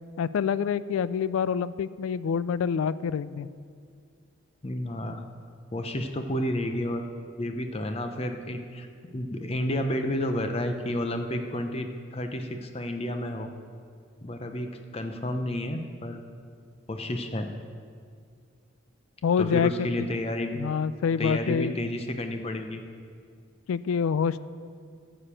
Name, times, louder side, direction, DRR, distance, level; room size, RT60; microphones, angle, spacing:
voice 1, 0.2-3.5 19.2-20.1 20.5-21.7 23.7-24.4, left 6 dB, 75° left, 17 dB, 0.3 m, -26 dB
voice 2, 4.6-5.2 5.7-7.0 7.4-8.9 9.1-13.5 14.2-16.2 16.9-17.5 19.4-20.6 21.2-22.8, left 1 dB, 30° left, 6 dB, 0.6 m, -31 dB
11.5 x 5.1 x 7.3 m, 2.2 s
head